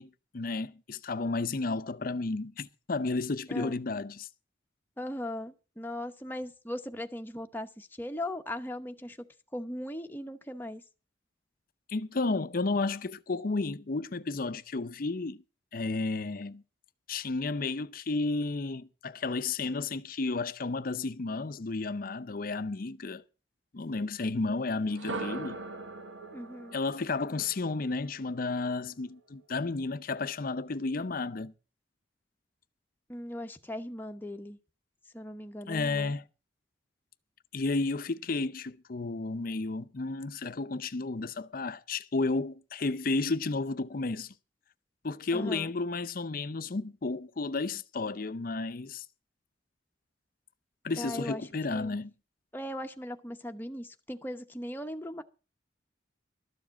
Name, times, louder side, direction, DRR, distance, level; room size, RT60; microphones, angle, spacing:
voice 1, 0.0-4.3 11.9-15.4 15.7-16.6 17.1-23.2 23.7-25.6 26.7-31.5 35.7-36.2 37.5-44.3 45.0-49.0 50.8-52.1, left 3 dB, 50° left, 0.6 m, -32 dB
voice 2, 5.0-9.3 9.5-10.8 26.3-26.7 33.1-34.6 35.1-36.1 45.3-45.7 51.0-52.0 52.5-55.2, left 1 dB, 10° left, 0.9 m, -38 dB
sound 1, 24.9-28.8, right 3 dB, 90° right, 1.4 m, -41 dB
13.0 x 7.2 x 7.4 m
head